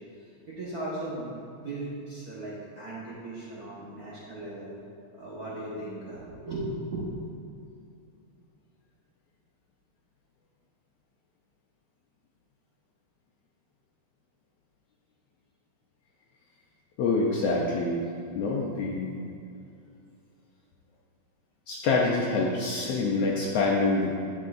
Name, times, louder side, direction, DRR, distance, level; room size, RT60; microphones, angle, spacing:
voice 1, 0.2-4.7 5.1-7.1, right 2 dB, 45° right, -8 dB, 1.3 m, -37 dB
voice 2, 17.0-18.0 18.3-19.2 21.7-24.1, left 3 dB, 75° left, -3 dB, 1.5 m, -26 dB
11.0 x 7.6 x 2.6 m, 2.5 s
omnidirectional pair, 3.4 m